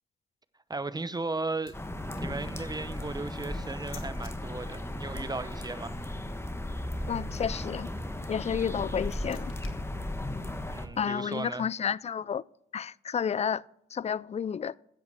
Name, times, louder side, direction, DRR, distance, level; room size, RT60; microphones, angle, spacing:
sound 1, 0.7-4.3 8.5-11.8, left 9 dB, 85° left, 1.3 m, -56 dB
voice 1, 0.7-1.7 2.2-5.9 10.7-11.7, right 3 dB, 20° right, 0.8 m, -36 dB
sound 2, 1.7-10.9, left 1 dB, 10° left, 1.2 m, -36 dB
voice 2, 7.1-7.9 8.3-9.5 11.0-12.4 12.7-13.6 13.9-14.7, left 7 dB, 35° left, 0.3 m, -31 dB
13.0 x 8.0 x 3.5 m
supercardioid pair, 50°, 20 cm